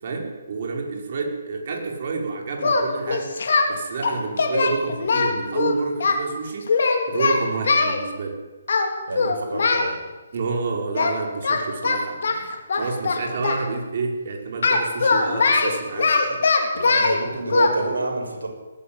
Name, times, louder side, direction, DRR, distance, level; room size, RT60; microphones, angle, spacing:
voice 1, 0.0-3.3 3.7-6.7 7.1-8.4 10.3-12.3 12.7-16.4, right 4 dB, 50° right, 1 dB, 5.5 m, -29 dB
Singing, 2.6-3.7 4.0-6.2 6.7-8.0 8.7-8.9 9.1-9.9 11.0-11.2 11.4-13.6 14.6-17.2 17.5-17.7, left 4 dB, 60° left, 3.9 m, -21 dB
voice 2, 9.1-10.0 16.7-18.5, right 3 dB, 75° right, 3 dB, 6.7 m, -27 dB
20.0 x 16.5 x 9.1 m, 1.2 s
figure-of-eight pair, 140°, 0 cm